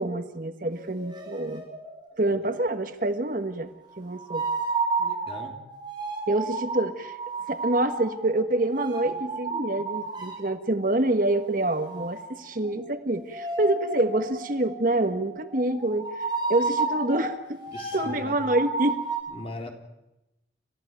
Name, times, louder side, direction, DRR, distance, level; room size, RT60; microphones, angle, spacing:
voice 1, 0.0-1.6 2.2-3.7 4.0-4.5 6.3-7.2 7.5-17.6 17.9-19.0, right 2 dB, 50° right, 9 dB, 1.4 m, -26 dB
sound 1, 0.7-2.2 4.2-10.5 11.8-19.2, right 3 dB, 25° right, 7.7 m, -32 dB
voice 2, 5.0-5.5 17.7-18.4 19.3-19.7, left 1 dB, 35° left, 3 dB, 3.8 m, -40 dB
30.0 x 14.5 x 9.2 m, 0.92 s
head